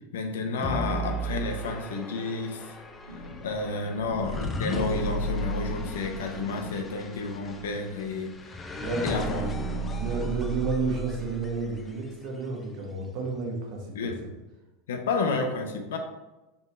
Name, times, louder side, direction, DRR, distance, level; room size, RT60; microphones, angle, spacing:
voice 1, 0.1-2.7 3.4-8.6 9.0-9.5 13.9-14.2 14.9-16.0, left 3 dB, 65° left, 4 dB, 0.6 m, -31 dB
sound 1, 0.6-11.9, equal, 20° left, 0.4 m, -34 dB
Thunder / Rain, 2.6-11.1, right 1 dB, 90° right, 0.7 m, -47 dB
voice 2, 8.8-9.2 10.0-14.1, right 3 dB, 45° right, -1 dB, 1.1 m, -31 dB
4.4 x 2.9 x 3.3 m, 1.0 s
figure-of-eight pair, 85°, 0 cm